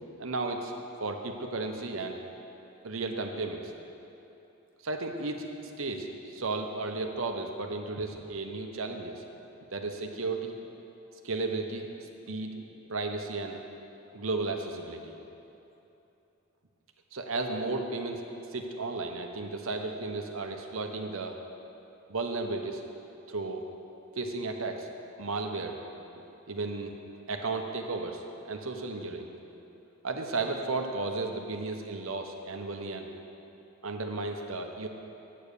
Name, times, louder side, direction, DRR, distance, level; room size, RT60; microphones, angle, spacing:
voice 1, 0.2-0.7 1.0-2.2 2.8-3.7 4.8-9.2 9.7-10.5 11.2-13.6 14.1-15.1 17.1-18.2 18.5-21.4 22.1-22.8 23.3-23.7 24.2-24.9 25.2-25.8 26.5-27.0 27.3-29.3 30.0-33.1 33.8-34.9, right 3 dB, 70° right, 4 dB, 1.0 m, -34 dB
8.6 x 8.4 x 6.9 m, 2.9 s
head